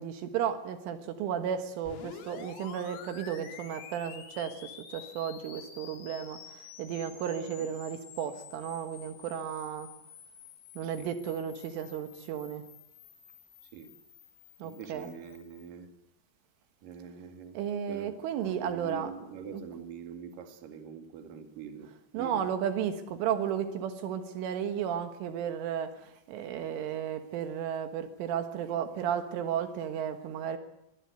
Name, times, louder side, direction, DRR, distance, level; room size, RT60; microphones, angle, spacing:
voice 1, 0.0-9.9 10.8-12.6 14.6-15.1 17.6-19.6 22.1-30.6, right 8 dB, 75° right, 8 dB, 3.9 m, -34 dB
sound 1, 1.8-15.7, left 7 dB, 80° left, 5.6 m, -50 dB
voice 2, 14.6-15.9 16.8-22.5, right 7 dB, 50° right, 6 dB, 3.5 m, -45 dB
23.0 x 22.5 x 8.1 m, 0.82 s
omnidirectional pair, 5.8 m